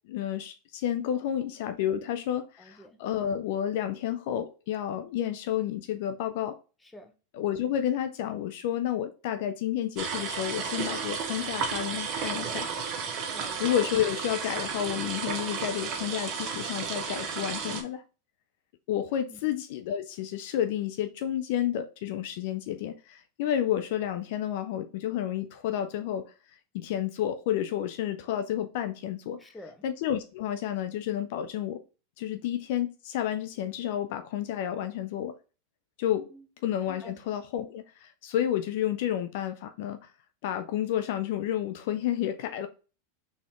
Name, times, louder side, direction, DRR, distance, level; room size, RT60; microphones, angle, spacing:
voice 1, 0.1-6.6 7.3-12.7 13.6-18.0 18.9-26.3 26.7-29.4 29.8-31.8 32.2-35.4 36.0-36.3 36.6-40.0 40.4-42.7, left 11 dB, 60° left, 0.4 m, -30 dB
voice 2, 2.6-3.0 6.8-7.1 13.3-13.8 19.3-19.4 29.4-29.8 36.3-36.4 37.0-37.2, left 1 dB, 10° left, 0.9 m, -48 dB
sound 1, 10.0-17.8, right 6 dB, 45° right, 0.9 m, -33 dB
4.2 x 3.4 x 3.1 m
hypercardioid pair, 95°, 0 cm